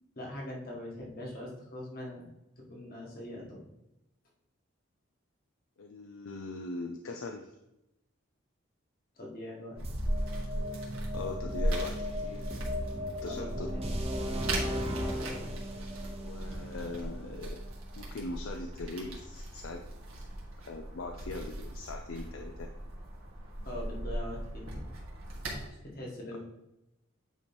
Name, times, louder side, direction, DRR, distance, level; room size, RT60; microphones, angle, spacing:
voice 1, 0.1-2.2 2.6-3.6 9.2-10.0 13.2-13.8 23.6-24.9 25.8-26.4, left 1 dB, 45° left, -2 dB, 1.7 m, -42 dB
voice 2, 5.8-7.5 11.1-12.5 13.2-13.7 16.2-17.6 18.0-19.8 20.6-22.7 26.3-26.4, left 2 dB, 80° left, 3 dB, 0.5 m, -41 dB
sound 1, 9.8-17.7, left 1 dB, 30° right, 0.8 m, -37 dB
sound 2, 9.8-25.7, right 1 dB, 80° right, 1.7 m, -38 dB
8.9 x 3.0 x 4.4 m, 0.90 s
head